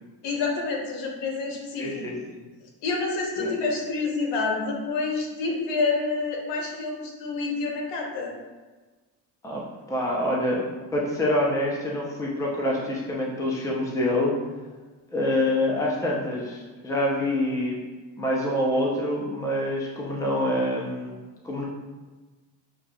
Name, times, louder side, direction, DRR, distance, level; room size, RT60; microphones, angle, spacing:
voice 1, 0.2-2.0 2.8-8.3, left 3 dB, 65° left, 0 dB, 1.1 m, -28 dB
voice 2, 1.8-2.4 3.4-3.5 9.4-9.6 9.9-14.4 15.1-17.8 18.2-21.6, left 1 dB, 5° left, -3 dB, 0.6 m, -26 dB
6.4 x 2.6 x 2.3 m, 1.3 s
supercardioid pair, 110°, 45 cm